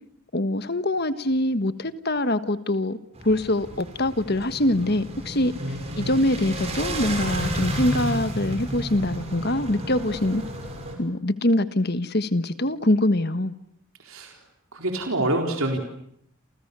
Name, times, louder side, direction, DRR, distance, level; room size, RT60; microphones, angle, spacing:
voice 1, 0.3-3.0 3.2-5.5 6.0-10.4 11.0-13.5, left 1 dB, 45° left, 1.4 m, -24 dB
sound 1, 3.2-10.9, right 1 dB, 30° right, 6.2 m, -32 dB
voice 2, 5.6-6.2 14.0-14.4 14.7-15.8, right 1 dB, 75° right, 4.1 m, -27 dB
29.0 x 29.0 x 6.9 m
head